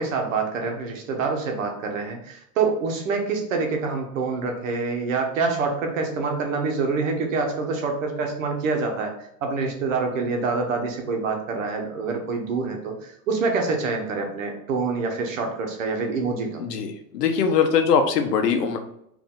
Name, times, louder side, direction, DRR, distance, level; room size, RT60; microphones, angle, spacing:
voice 1, 0.0-9.1 9.4-16.6, right 4 dB, 55° right, 3 dB, 1.1 m, -26 dB
voice 2, 16.6-18.8, left 6 dB, 90° left, 6 dB, 1.0 m, -21 dB
4.8 x 2.6 x 3.7 m, 0.77 s
supercardioid pair, 175°, 46 cm